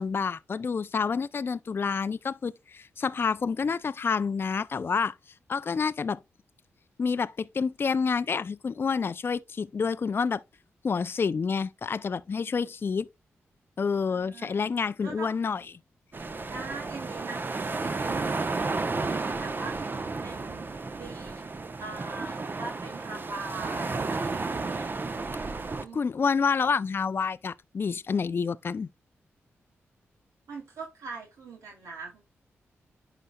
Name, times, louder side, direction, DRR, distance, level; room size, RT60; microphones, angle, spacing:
voice 1, 0.0-5.2 5.5-6.2 7.0-10.4 10.8-13.1 13.8-15.7 25.9-28.9, left 5 dB, 45° left, 0.4 m, -28 dB
voice 2, 14.1-14.6 15.0-15.4 16.5-17.4 17.7-19.9 20.2-20.7 21.0-21.4 21.8-24.9 25.7-26.2 30.5-32.2, right 3 dB, 85° right, 2.5 m, -42 dB
sound 1, 16.1-25.9, right 3 dB, 40° right, 0.8 m, -32 dB
11.0 x 4.0 x 2.3 m
cardioid pair, 55°, 5 cm